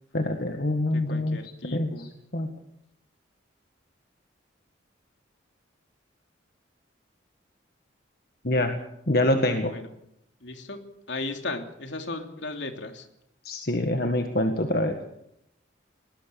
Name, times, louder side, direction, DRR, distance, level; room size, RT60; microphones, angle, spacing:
voice 1, 0.1-2.5 8.4-8.7 9.1-9.7 13.5-15.0, left 1 dB, 50° left, 5 dB, 1.8 m, -26 dB
voice 2, 0.9-2.2 9.7-9.9 10.4-10.8 11.1-13.1, left 2 dB, 75° left, 5 dB, 3.1 m, -36 dB
20.0 x 20.0 x 7.0 m, 0.79 s
head